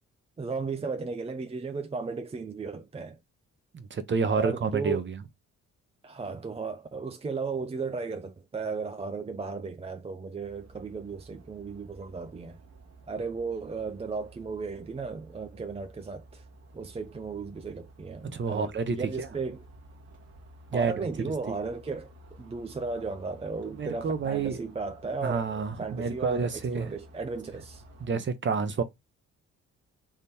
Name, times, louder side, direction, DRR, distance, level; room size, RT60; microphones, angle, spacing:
voice 1, 0.4-3.2 4.3-5.0 6.0-12.6 13.1-16.4 16.7-19.6 20.7-27.8 28.1-28.3, right 4 dB, 20° right, 0.5 m, -35 dB
voice 2, 3.7-5.2 18.3-19.3 20.7-21.1 21.5-21.6 23.8-24.6 25.2-26.9 28.0-28.8, right 5 dB, 40° right, 0.9 m, -29 dB
sound 1, 10.4-28.1, right 1 dB, 55° right, 1.4 m, -53 dB
3.7 x 3.3 x 4.2 m
cardioid pair, 90°, 30 cm